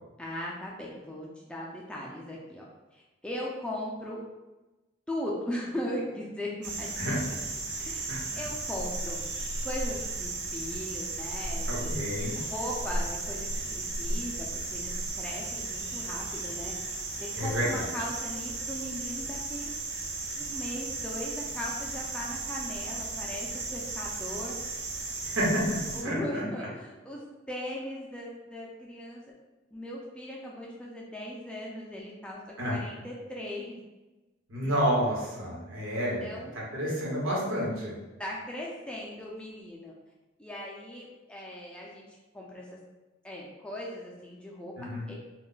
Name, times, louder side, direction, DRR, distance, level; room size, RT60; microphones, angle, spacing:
voice 1, 0.2-2.6 2.9-4.2 5.1-7.1 7.8-9.2 9.6-12.0 12.3-16.8 17.4-19.7 20.4-24.6 25.9-29.2 29.7-33.8 35.9-36.6 38.2-39.9 40.4-42.0 42.3-42.8 43.2-44.7 45.1-45.2, left 1 dB, 5° left, -4 dB, 0.3 m, -38 dB
sound 1, 6.6-26.0, right 2 dB, 60° right, 0.6 m, -35 dB
voice 2, 8.1-8.4 11.7-12.4 17.3-17.8 25.2-25.6 26.0-26.4 32.6-32.8 34.5-37.9 44.8-45.0, equal, 85° right, -5 dB, 0.9 m, -30 dB
2.2 x 2.0 x 3.8 m, 1.1 s
head